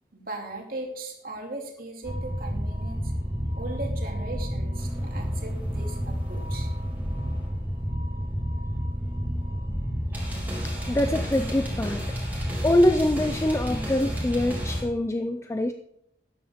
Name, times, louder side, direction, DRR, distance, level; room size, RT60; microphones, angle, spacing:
voice 1, 0.1-3.1 3.6-6.7 7.1-7.2, right 2 dB, 55° right, 1 dB, 2.6 m, -38 dB
sound 1, 2.0-14.8, equal, 10° right, 3.4 m, -30 dB
voice 2, 10.6-12.1 12.6-15.7, left 1 dB, 15° left, 7 dB, 0.4 m, -24 dB
13.0 x 10.0 x 3.6 m, 0.76 s
head